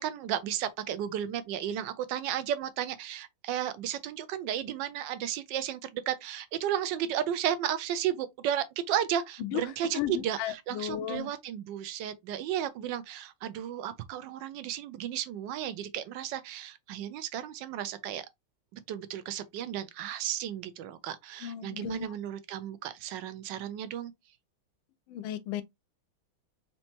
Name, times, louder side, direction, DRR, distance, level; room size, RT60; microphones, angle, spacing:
voice 1, 0.0-18.3 18.7-24.1, right 10 dB, 70° right, 1.2 m, -34 dB
voice 2, 9.9-11.3 21.4-22.1 25.1-25.6, left 11 dB, 80° left, 1.4 m, -34 dB
4.4 x 2.9 x 2.7 m
omnidirectional pair, 2.3 m